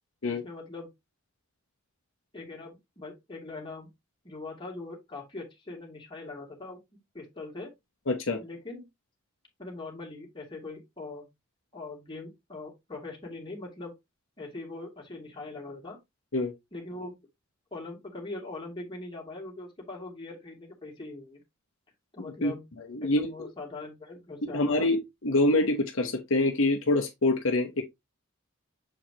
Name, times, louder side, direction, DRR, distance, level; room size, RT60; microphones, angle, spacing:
voice 1, 0.3-0.9 2.3-3.9 4.2-6.8 7.1-7.7 8.4-8.9 9.6-11.3 11.7-13.9 14.4-16.0 16.7-17.2 17.7-21.4 22.1-22.6 23.0-24.9, left 2 dB, 25° left, 2.4 m, -41 dB
voice 2, 8.1-8.4 16.3-16.5 22.2-22.5 22.9-23.5 24.4-27.8, left 2 dB, 65° left, 1.1 m, -26 dB
7.3 x 4.8 x 2.9 m
head